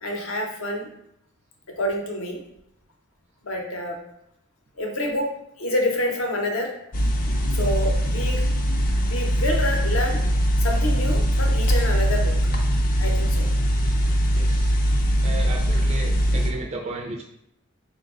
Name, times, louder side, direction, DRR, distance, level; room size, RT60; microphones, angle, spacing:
voice 1, 0.0-0.9 1.8-2.4 3.4-4.0 4.8-6.7 7.5-8.4 9.0-10.2 10.6-12.3 13.0-13.4, left 1 dB, 70° left, 1 dB, 0.7 m, -27 dB
sound 1, 6.9-16.5, equal, 40° left, 0.4 m, -21 dB
voice 2, 14.3-14.7 15.2-17.2, right 2 dB, 30° right, 1 dB, 0.3 m, -34 dB
3.9 x 2.2 x 3.6 m, 0.79 s
head